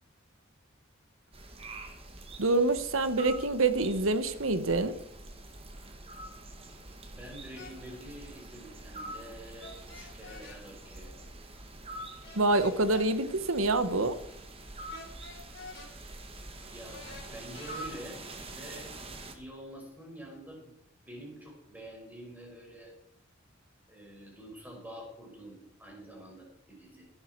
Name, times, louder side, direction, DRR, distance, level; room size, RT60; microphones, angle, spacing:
sound 1, 1.3-19.3, right 2 dB, 30° right, 1.8 m, -46 dB
voice 1, 2.4-4.9 12.4-14.1, right 2 dB, 85° right, 11 dB, 1.3 m, -26 dB
voice 2, 7.1-11.7 16.7-17.0 17.3-18.2 18.5-18.9 19.3-20.8 21.0-22.9 23.9-27.1, right 1 dB, 10° right, -1 dB, 4.7 m, -47 dB
sound 2, 7.6-7.8 9.6-10.6 12.2-13.1 14.9-15.9 16.9-17.9, left 3 dB, 55° left, 3.5 m, -47 dB
16.5 x 11.5 x 4.7 m, 0.74 s
head